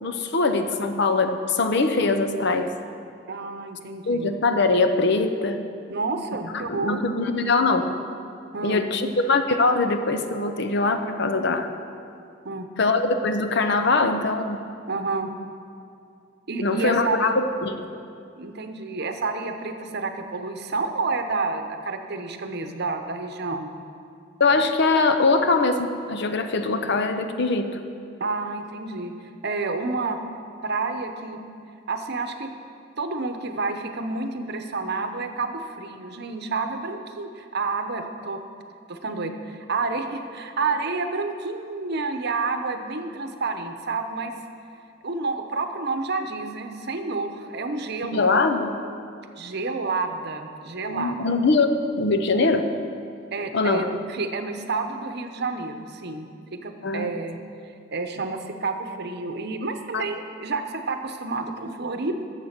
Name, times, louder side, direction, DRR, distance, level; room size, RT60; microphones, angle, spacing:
voice 1, 0.0-2.7 4.1-5.6 6.5-7.9 8.6-11.7 12.8-14.6 16.6-17.7 24.4-27.8 48.1-48.8 50.9-51.7 52.0-52.6 53.5-53.9 56.8-57.1 59.9-60.0, left 3 dB, 60° left, 7 dB, 0.7 m, -22 dB
voice 2, 3.3-4.3 5.9-7.0 8.5-8.8 12.4-12.7 14.9-15.3 16.5-17.3 18.4-23.7 28.2-29.1 29.4-30.2 30.6-31.4 31.9-32.5 33.0-38.4 38.9-44.3 45.0-48.2 49.4-51.2 53.3-56.3 56.5-57.4 57.9-62.2, right 3 dB, 60° right, 7 dB, 0.8 m, -29 dB
11.5 x 7.4 x 6.6 m, 2.5 s
head